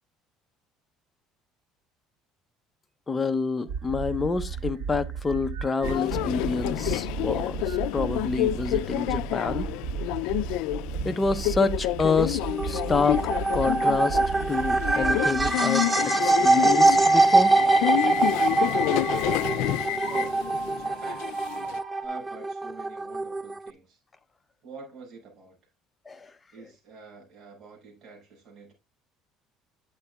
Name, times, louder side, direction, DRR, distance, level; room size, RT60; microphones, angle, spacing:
voice 1, 3.1-9.7 11.0-14.2 14.5-17.5 26.1-26.3, left 4 dB, 20° left, 0.8 m, -28 dB
sound 1, 3.7-15.5 16.0-22.0, right 7 dB, 80° right, 2.7 m, -36 dB
Subway metro underground, 5.8-21.8, left 16 dB, 80° left, 0.4 m, -29 dB
sound 2, 12.4-23.7, right 3 dB, 10° right, 0.4 m, -24 dB
voice 2, 20.8-21.2 22.0-24.0 24.6-25.7 26.5-28.7, right 4 dB, 50° right, 6.3 m, -46 dB
11.0 x 8.1 x 2.3 m
cardioid pair, 120°, 0 cm